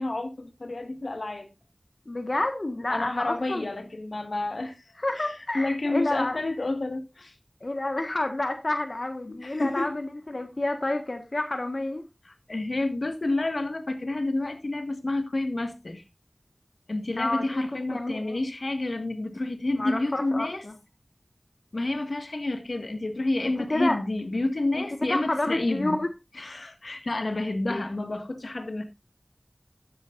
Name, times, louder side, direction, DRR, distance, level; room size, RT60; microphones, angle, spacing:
voice 1, 0.0-1.5 2.9-7.3 9.3-9.9 12.3-16.0 16.9-20.6 21.7-26.0 26.3-28.8, left 2 dB, 85° left, 1.8 m, -29 dB
voice 2, 2.1-3.7 5.0-6.4 7.6-12.0 17.2-18.4 19.8-20.7 23.7-24.0 24.7-24.8 25.1-26.1 27.7-27.8, left 2 dB, 65° left, 1.6 m, -29 dB
13.5 x 9.8 x 2.6 m
wide cardioid pair, 40°, 0 cm